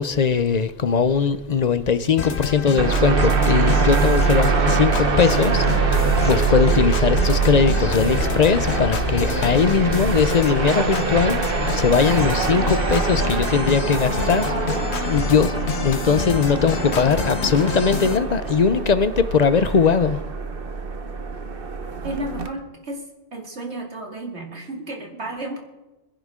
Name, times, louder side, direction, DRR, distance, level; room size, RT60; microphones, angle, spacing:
voice 1, 0.0-5.9 6.2-11.4 11.7-14.5 14.8-15.5 15.8-20.2, left 6 dB, 45° left, 13 dB, 0.6 m, -20 dB
sound 1, 2.2-18.2, left 6 dB, 70° left, 1.3 m, -28 dB
sound 2, 2.8-22.5, right 4 dB, 55° right, 1.2 m, -23 dB
voice 2, 22.0-23.0 23.3-25.6, right 1 dB, 75° right, 2 dB, 2.6 m, -32 dB
25.0 x 10.5 x 3.7 m, 1.1 s
omnidirectional pair, 1.1 m